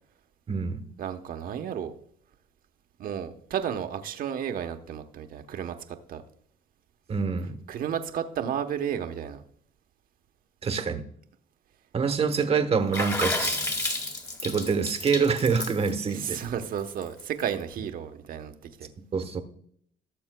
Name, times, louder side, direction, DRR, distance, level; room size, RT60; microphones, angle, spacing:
voice 1, 0.5-0.8 7.1-7.6 10.6-11.1 11.9-13.6 14.4-16.4 19.1-19.4, right 5 dB, 35° right, 1.1 m, -26 dB
voice 2, 1.0-1.9 3.0-6.2 7.7-9.4 16.1-18.5 18.8-18.9, right 8 dB, 60° right, 1.0 m, -32 dB
Water / Splash splatter, 12.9-17.4, left 2 dB, 20° left, 2.0 m, -31 dB
17.5 x 7.0 x 2.3 m
cardioid pair, 110°, 17 cm